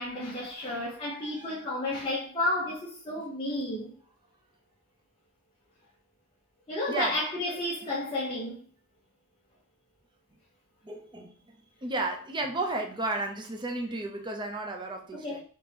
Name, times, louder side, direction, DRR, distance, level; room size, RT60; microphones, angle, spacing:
voice 1, 0.0-3.9 6.7-8.6 15.1-15.4, left 1 dB, 25° left, 0.8 m, -32 dB
voice 2, 1.2-1.6 6.9-7.2 7.5-7.6 10.8-15.4, right 2 dB, 20° right, 0.6 m, -33 dB
3.5 x 2.9 x 3.3 m
head